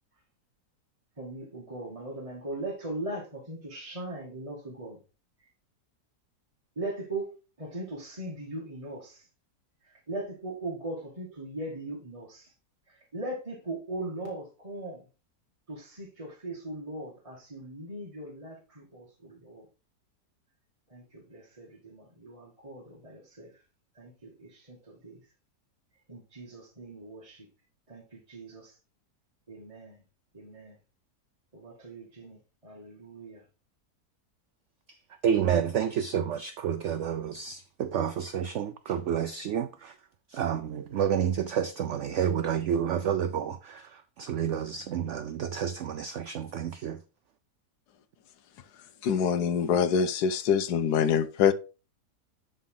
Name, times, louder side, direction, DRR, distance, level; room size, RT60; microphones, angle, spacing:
voice 1, 1.2-5.0 6.8-7.3 7.6-9.3 9.8-12.5 12.9-15.1 15.7-19.7 20.9-23.6 24.0-25.2 26.1-27.5 27.9-28.8 29.5-30.0 30.3-30.8 31.5-33.4, right 2 dB, 20° right, 1.9 m, -39 dB
voice 2, 35.2-39.9 40.3-43.9 44.2-47.0, right 8 dB, 70° right, 0.7 m, -29 dB
voice 3, 49.0-51.5, left 7 dB, 85° left, 1.3 m, -24 dB
11.0 x 4.1 x 3.8 m
omnidirectional pair, 1.7 m